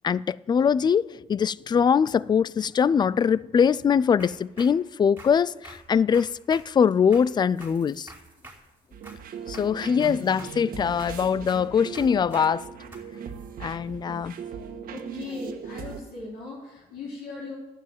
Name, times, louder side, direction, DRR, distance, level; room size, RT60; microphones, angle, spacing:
voice 1, 0.0-8.1 9.5-12.7 13.6-14.3, left 7 dB, 25° left, 0.4 m, -22 dB
sound 1, 4.2-4.8 5.2-6.7 7.1-9.3 9.5-11.7 11.9-12.5 12.9-13.0, right 2 dB, 10° right, 5.0 m, -47 dB
sound 2, 8.9-16.0, right 7 dB, 55° right, 1.7 m, -39 dB
voice 2, 14.9-17.5, left 3 dB, 70° left, 4.8 m, -38 dB
12.0 x 9.7 x 9.1 m
cardioid pair, 110°, 17 cm